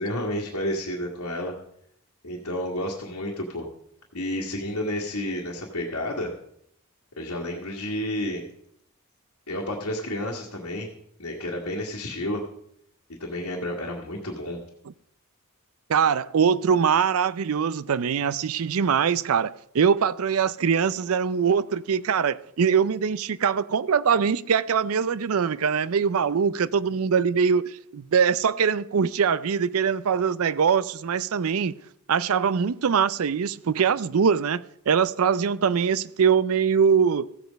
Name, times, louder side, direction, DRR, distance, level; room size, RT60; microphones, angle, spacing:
voice 1, 0.0-1.5 2.2-3.7 4.1-6.3 7.2-8.4 9.5-10.9 11.2-12.4 13.2-14.6, left 1 dB, 75° left, 1.8 m, -30 dB
voice 2, 15.9-31.7 32.1-37.3, right 6 dB, 70° right, 0.5 m, -23 dB
15.0 x 7.9 x 5.1 m
head